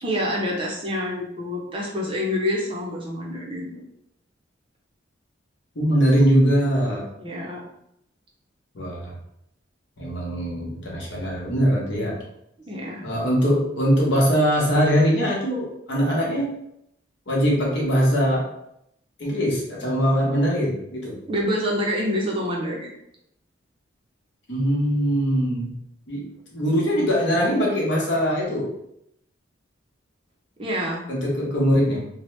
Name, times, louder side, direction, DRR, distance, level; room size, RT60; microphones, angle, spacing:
voice 1, 0.0-3.7 7.2-7.6 12.7-13.0 21.3-22.9 30.6-31.0, equal, 25° right, -2 dB, 0.5 m, -27 dB
voice 2, 5.7-7.0 8.7-9.1 10.0-12.2 13.0-16.5 17.3-18.5 19.2-21.2 24.5-25.7 26.1-26.2 26.5-28.7 31.1-32.1, equal, 65° left, -4 dB, 0.9 m, -21 dB
2.9 x 2.1 x 3.1 m, 0.78 s
head